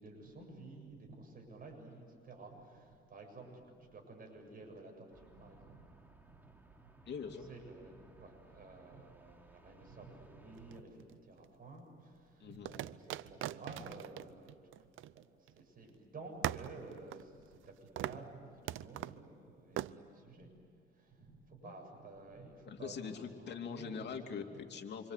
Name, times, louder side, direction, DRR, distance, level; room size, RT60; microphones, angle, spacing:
voice 1, 0.0-7.0 7.4-14.9 15.1-20.6 20.9-22.9 23.4-24.6, right 3 dB, 45° right, 2 dB, 7.6 m, -53 dB
sound 1, 5.1-10.8, right 2 dB, 10° right, 2.8 m, -62 dB
voice 2, 7.1-7.5 12.4-12.7 21.6-21.8 22.6-24.4 24.7-25.1, left 6 dB, 60° left, 4 dB, 2.8 m, -43 dB
sound 2, 10.6-11.5 12.7-15.6 15.9-16.0 16.4-17.7 18.0-18.3 18.7-19.2 19.8-19.9, right 14 dB, 85° right, 0.6 m, -41 dB
27.5 x 26.0 x 8.3 m, 2.3 s
cardioid pair, 90°, 20 cm